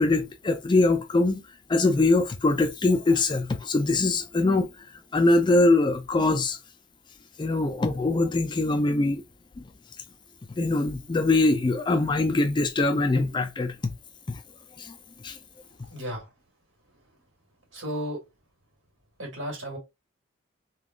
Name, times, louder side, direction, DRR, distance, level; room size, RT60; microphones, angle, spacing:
voice 1, 0.0-1.4 1.7-4.7 5.1-6.6 7.4-9.2 9.6-9.7 10.6-13.8 14.3-14.4 14.8-14.9 15.2-15.4, left 2 dB, 25° left, 0.3 m, -23 dB
voice 2, 15.9-16.3 17.7-18.2 19.2-19.8, equal, 75° right, 1.8 m, -33 dB
3.5 x 2.3 x 2.3 m
head